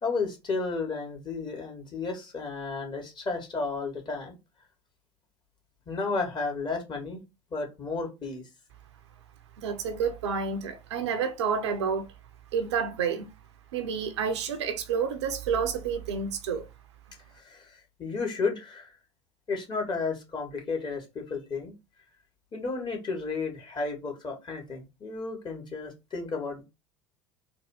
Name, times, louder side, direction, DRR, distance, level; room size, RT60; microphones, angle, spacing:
voice 1, 0.0-4.4 5.9-7.2 7.5-8.4 17.3-18.9 19.5-21.7 22.5-26.6, left 4 dB, 30° left, 2.3 m, -33 dB
voice 2, 9.6-12.1 12.5-13.3 13.7-16.7, right 6 dB, 70° right, 0.8 m, -29 dB
4.1 x 2.7 x 4.8 m
figure-of-eight pair, 70°, 15 cm